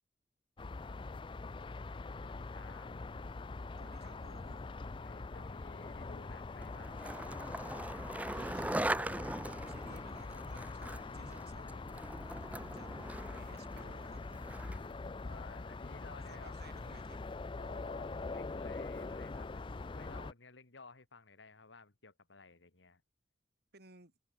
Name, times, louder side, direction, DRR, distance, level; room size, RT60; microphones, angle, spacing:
sound 1, 0.6-20.3, left 3 dB, 25° left, 0.4 m, -43 dB
voice 1, 2.2-2.9 5.0-7.4 15.2-16.5 17.6-23.0, left 3 dB, 70° left, 1.9 m, -56 dB
voice 2, 3.8-4.7 8.3-11.9 12.2-14.5 16.3-17.3 23.7-24.1, right 2 dB, 55° right, 5.3 m, -58 dB
Skateboard, 6.6-15.0, right 1 dB, 10° right, 0.8 m, -41 dB
head